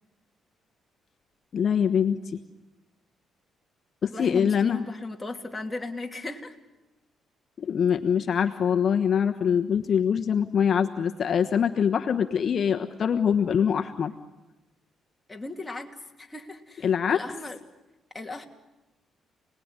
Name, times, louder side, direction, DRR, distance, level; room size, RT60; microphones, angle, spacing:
voice 1, 1.5-2.4 4.0-4.8 7.6-14.1 16.8-17.2, left 7 dB, 55° left, 6 dB, 1.2 m, -24 dB
voice 2, 4.1-6.6 15.3-17.6 18.1-18.5, left 2 dB, 15° left, 2 dB, 3.0 m, -36 dB
29.5 x 20.0 x 9.8 m, 1.0 s
cardioid pair, 90°, 0 cm